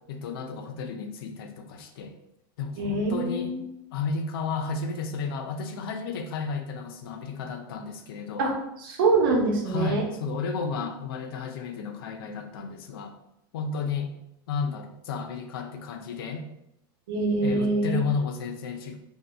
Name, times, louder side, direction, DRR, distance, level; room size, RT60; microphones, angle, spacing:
voice 1, 0.1-2.1 2.6-3.6 3.9-8.5 9.7-13.1 13.5-14.1 14.5-16.5 17.4-19.0, left 5 dB, 80° left, 6 dB, 0.5 m, -32 dB
voice 2, 2.8-3.6 8.4-8.5 8.8-10.0 17.1-18.0, right 3 dB, 65° right, 0 dB, 0.9 m, -24 dB
3.8 x 2.7 x 2.2 m, 0.81 s
supercardioid pair, 180°, 12 cm